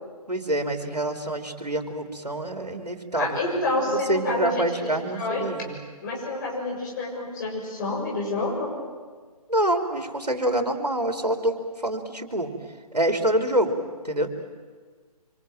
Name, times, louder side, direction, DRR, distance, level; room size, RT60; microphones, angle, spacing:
voice 1, 0.3-3.4 3.8-5.8 9.5-12.5 12.9-13.8 14.0-14.3, right 1 dB, 85° right, 6 dB, 3.3 m, -26 dB
voice 2, 3.2-5.4 6.0-8.7, left 2 dB, 30° left, -1 dB, 6.8 m, -28 dB
25.5 x 25.0 x 9.1 m, 1.5 s
figure-of-eight pair, 145°, 20 cm